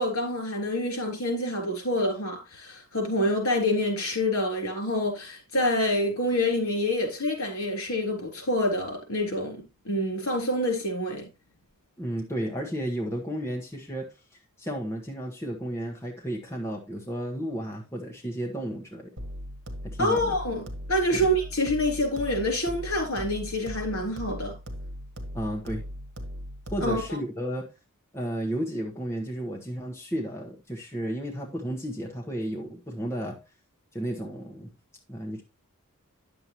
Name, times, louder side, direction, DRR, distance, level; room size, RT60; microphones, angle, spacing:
voice 1, 0.0-11.2 20.0-20.6 20.9-24.5 26.8-27.0, left 1 dB, 70° left, 3.6 m, -27 dB
voice 2, 12.0-14.1 14.6-19.1 19.8-20.3 21.1-21.2 25.3-25.8 26.7-27.7 28.1-33.4 33.9-34.7 35.1-35.4, equal, 10° left, 1.1 m, -33 dB
sound 1, 19.2-27.2, equal, 55° right, 1.5 m, -39 dB
9.7 x 7.0 x 3.0 m
head